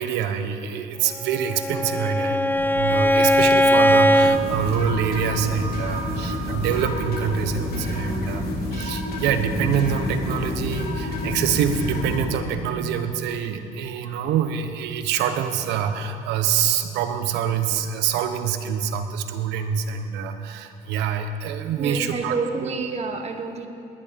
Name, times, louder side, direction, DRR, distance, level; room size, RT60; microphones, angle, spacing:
voice 1, 0.0-22.7, right 7 dB, 85° right, 8 dB, 1.2 m, -25 dB
Bowed string instrument, 1.2-4.4, equal, 10° left, 0.6 m, -19 dB
sound 1, 2.5-12.7, equal, 10° right, 2.3 m, -35 dB
sound 2, 4.2-12.2, left 1 dB, 65° left, 3.4 m, -29 dB
voice 2, 21.8-23.7, right 4 dB, 40° right, 6 dB, 1.6 m, -28 dB
19.5 x 11.5 x 5.3 m, 2.9 s
cardioid pair, 110°, 17 cm